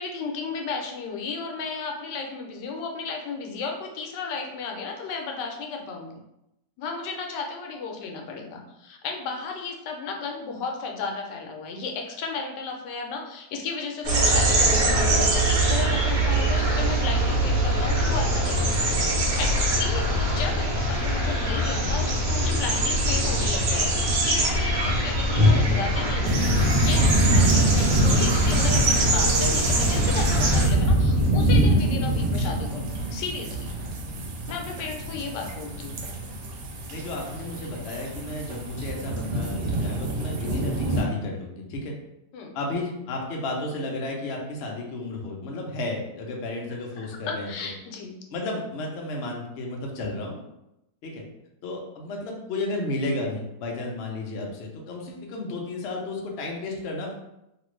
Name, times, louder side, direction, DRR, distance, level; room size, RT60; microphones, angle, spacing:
voice 1, 0.0-6.2 6.8-33.7 34.5-36.0 42.3-42.6 47.0-48.2, left 4 dB, 85° left, 2 dB, 1.2 m, -34 dB
sound 1, 14.0-30.7, right 1 dB, 65° right, 1.2 m, -23 dB
sound 2, 26.2-41.0, right 1 dB, 80° right, 1.2 m, -25 dB
voice 2, 36.9-41.9 42.5-47.5 48.3-50.4 51.0-51.2 51.6-57.1, left 2 dB, 65° left, 0 dB, 0.6 m, -32 dB
2.9 x 2.4 x 3.1 m, 0.87 s
omnidirectional pair, 1.8 m